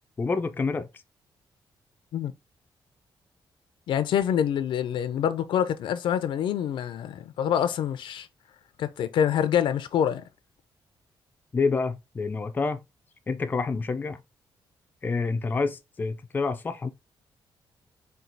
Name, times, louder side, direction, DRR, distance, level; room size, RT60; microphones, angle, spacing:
voice 1, 0.2-0.9 11.5-12.8 13.3-14.2 15.0-16.9, left 4 dB, 20° left, 0.4 m, -28 dB
voice 2, 3.9-8.3 8.8-10.2, left 9 dB, 75° left, 0.5 m, -26 dB
4.4 x 2.3 x 3.9 m
cardioid pair, 135°, 8 cm